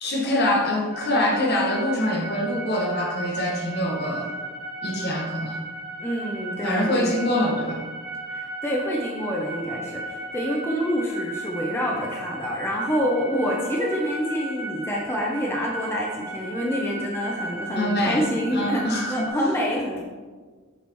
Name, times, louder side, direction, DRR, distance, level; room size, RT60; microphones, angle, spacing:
voice 1, 0.0-4.3 4.8-5.6 6.6-7.8 17.7-18.2 18.5-19.3, left 1 dB, 50° left, 0 dB, 1.4 m, -24 dB
sound 1, 0.9-19.3, right 2 dB, 25° right, 2.2 m, -35 dB
voice 2, 6.0-7.2 8.3-20.0, equal, 10° left, -2 dB, 0.7 m, -27 dB
8.2 x 6.6 x 3.1 m, 1.5 s
head